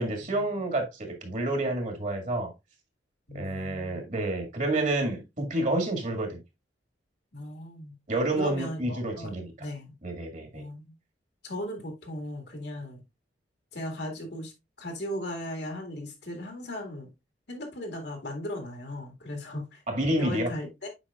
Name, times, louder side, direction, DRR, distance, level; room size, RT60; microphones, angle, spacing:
voice 1, 0.0-2.5 3.3-6.4 8.1-9.5 10.0-10.6 19.9-20.5, right 1 dB, 45° right, 1.9 m, -29 dB
voice 2, 3.3-4.0 7.3-8.0 8.4-9.3 9.6-9.9 10.5-10.9 11.4-13.0 13.7-14.5 14.8-17.1 17.5-19.8 20.2-20.9, left 1 dB, 65° left, 2.0 m, -37 dB
8.0 x 5.2 x 2.3 m
head